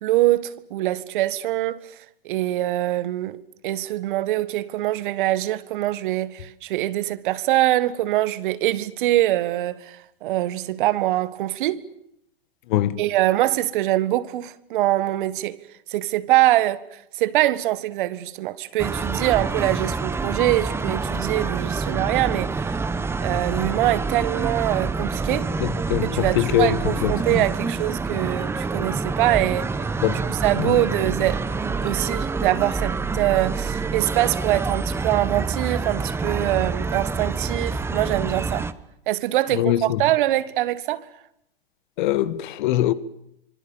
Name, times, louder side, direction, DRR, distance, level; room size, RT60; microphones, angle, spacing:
voice 1, 0.0-1.9 2.2-3.4 3.6-11.8 13.0-15.6 15.9-22.8 23.2-25.5 26.0-29.8 30.3-38.7 39.1-41.0, right 15 dB, 55° right, 1.8 m, -23 dB
voice 2, 12.7-13.0 25.6-26.7 27.0-27.4 30.0-30.2 30.6-30.8 39.5-40.0 42.0-42.9, left 13 dB, 55° left, 1.7 m, -22 dB
sound 1, 18.8-38.7, right 4 dB, 10° right, 1.0 m, -27 dB
26.0 x 25.5 x 7.2 m
hypercardioid pair, 125°, 30 cm